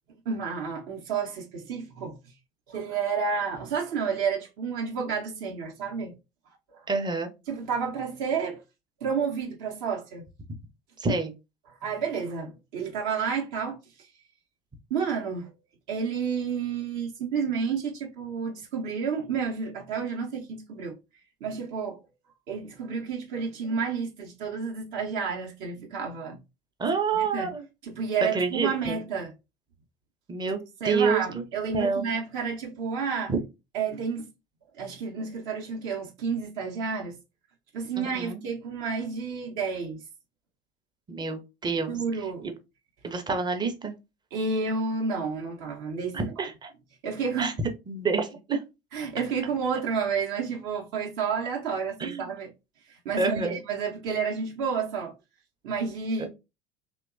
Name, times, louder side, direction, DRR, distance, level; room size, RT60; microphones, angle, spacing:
voice 1, 0.3-2.2 2.7-6.1 6.7-6.8 7.5-8.6 9.0-10.2 11.8-14.1 14.9-15.5 15.9-20.9 21.4-22.0 22.5-26.4 27.1-27.5 27.8-29.3 30.8-33.3 33.7-34.3 34.7-37.2 37.7-40.0 41.9-42.5 44.3-46.4 47.0-47.5 48.9-52.5 52.9-55.1 55.6-56.3, right 5 dB, 55° right, 0.7 m, -30 dB
voice 2, 6.9-7.3 11.0-11.3 26.8-27.6 28.3-29.0 30.3-30.6 30.8-31.4 31.7-32.0 33.3-33.4 38.0-38.4 41.1-42.0 42.4-42.5 43.0-43.9 46.1-46.7 47.4-47.5 47.9-48.6 52.0-52.3 53.2-53.6 56.2-56.3, right 4 dB, 15° right, 0.5 m, -28 dB
2.9 x 2.1 x 2.4 m
figure-of-eight pair, 65°, 30 cm